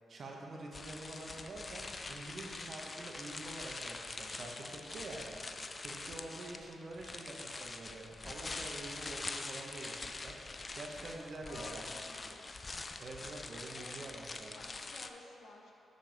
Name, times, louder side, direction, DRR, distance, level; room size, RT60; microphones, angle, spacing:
voice 1, 0.1-5.3 5.8-11.9 13.0-14.6, right 2 dB, 40° right, -1 dB, 0.9 m, -47 dB
sound 1, 0.7-15.1, left 3 dB, 25° left, 0.3 m, -44 dB
voice 2, 11.4-12.4 13.7-14.0 14.5-15.7, left 2 dB, 65° left, 0 dB, 0.9 m, -54 dB
6.8 x 6.5 x 5.0 m, 2.8 s
wide cardioid pair, 155°, 0 cm